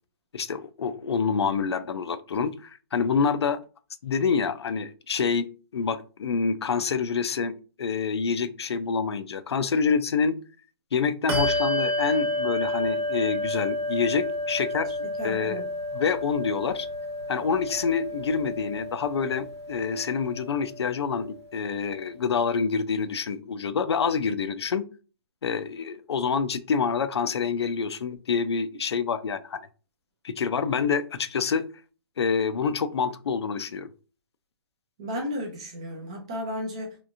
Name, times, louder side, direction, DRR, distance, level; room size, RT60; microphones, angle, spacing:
voice 1, 0.3-3.6 4.0-10.4 10.9-15.0 15.2-15.6 15.9-16.9 17.3-24.8 25.4-29.7 30.2-31.7 32.2-33.9, left 5 dB, 75° left, 0.5 m, -27 dB
Bell, 11.3-21.3, left 1 dB, 90° right, 1.0 m, -30 dB
voice 2, 15.2-15.7 35.0-37.0, equal, 15° right, 0.3 m, -33 dB
2.9 x 2.5 x 2.4 m
hypercardioid pair, 170°, 14 cm